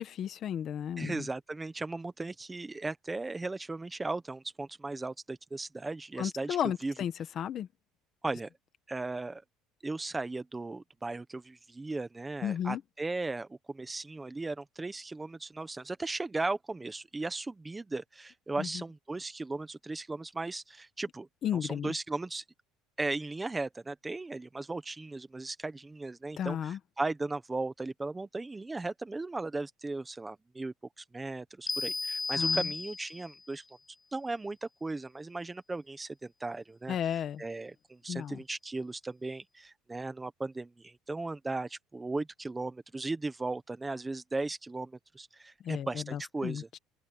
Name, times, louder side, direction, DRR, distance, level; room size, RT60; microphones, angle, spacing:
voice 1, 0.0-1.3 6.2-7.7 12.4-12.8 18.6-18.8 21.4-21.9 26.4-26.8 32.3-32.7 36.9-37.4 38.1-38.4 45.6-46.8, left 9 dB, 40° left, 1.2 m, -34 dB
voice 2, 1.0-6.9 8.2-8.5 8.9-9.4 9.8-22.4 23.0-33.6 34.1-46.7, right 3 dB, 10° right, 1.0 m, -37 dB
sound 1, 31.7-33.4, left 4 dB, 15° left, 0.4 m, -33 dB
cardioid pair, 155°, 0 cm